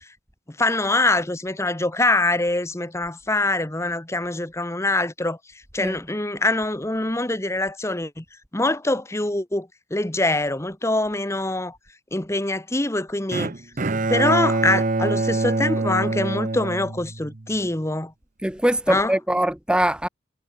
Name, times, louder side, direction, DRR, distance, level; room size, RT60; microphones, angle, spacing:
voice 1, 0.6-5.4 5.7-8.2 8.5-11.8 12.1-13.5 14.1-18.1 18.9-19.1, left 2 dB, 15° left, 1.1 m, -24 dB
Bowed string instrument, 13.3-17.5, right 2 dB, 45° right, 0.8 m, -25 dB
voice 2, 18.4-20.1, right 1 dB, 5° right, 0.6 m, -22 dB
head